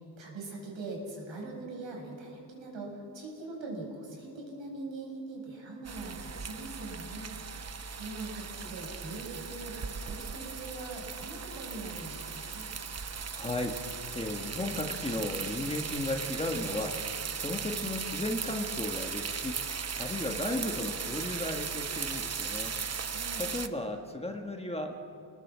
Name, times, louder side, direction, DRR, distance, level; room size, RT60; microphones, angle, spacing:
voice 1, 0.2-7.3 8.0-12.7 23.1-23.4, right 2 dB, 75° right, -1 dB, 7.8 m, -42 dB
sound 1, 5.8-23.7, right 6 dB, 35° right, 0.9 m, -37 dB
voice 2, 13.3-13.8 14.1-22.7 23.4-24.9, left 1 dB, 15° left, 3 dB, 1.6 m, -35 dB
30.0 x 20.5 x 7.5 m, 2.8 s
wide cardioid pair, 150°, 46 cm